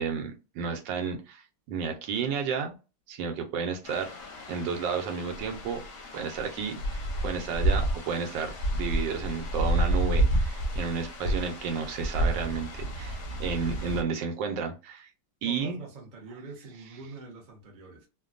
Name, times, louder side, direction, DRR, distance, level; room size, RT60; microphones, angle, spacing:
voice 1, 0.0-1.4 1.7-2.7 3.1-4.1 4.5-5.8 6.1-15.1 15.4-15.8, right 6 dB, 70° right, 1.3 m, -32 dB
sound 1, 3.8-14.0, right 1 dB, 60° left, 0.8 m, -30 dB
voice 2, 15.4-18.1, right 4 dB, 45° right, 0.6 m, -44 dB
3.4 x 2.2 x 2.4 m
omnidirectional pair, 2.1 m